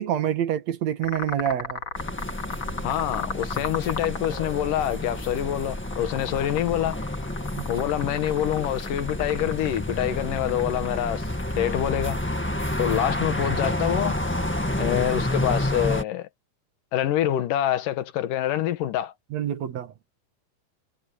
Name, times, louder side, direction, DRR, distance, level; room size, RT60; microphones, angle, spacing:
voice 1, 0.0-1.8 7.6-7.7 19.3-19.9, right 10 dB, 60° right, 2.4 m, -27 dB
sound 1, 1.0-14.3, left 5 dB, 40° left, 2.9 m, -37 dB
sound 2, 2.0-16.0, left 1 dB, 10° left, 0.5 m, -29 dB
voice 2, 2.8-7.0 7.7-11.3 11.6-12.2 12.8-14.2 14.8-16.3 16.9-19.1, left 11 dB, 85° left, 2.9 m, -26 dB
omnidirectional pair, 3.7 m